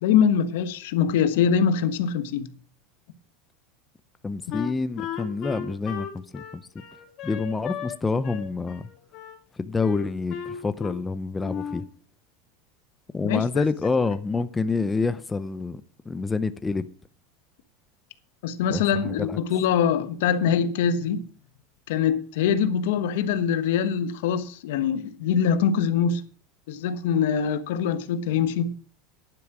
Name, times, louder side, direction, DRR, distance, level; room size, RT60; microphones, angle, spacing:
voice 1, 0.0-2.5 13.2-13.6 18.4-21.2 21.9-26.2 26.7-28.7, left 7 dB, 75° left, 1.4 m, -23 dB
voice 2, 4.2-6.1 6.3-6.6 7.2-8.8 9.6-11.9 13.1-15.8 16.1-16.9 18.7-19.4, left 4 dB, 10° left, 0.6 m, -27 dB
Wind instrument woodwind instrument, 4.5-8.0 8.2-9.4 9.8-11.1 11.4-11.9, left 8 dB, 40° left, 2.8 m, -36 dB
10.5 x 9.9 x 6.0 m
supercardioid pair, 155°, 0 cm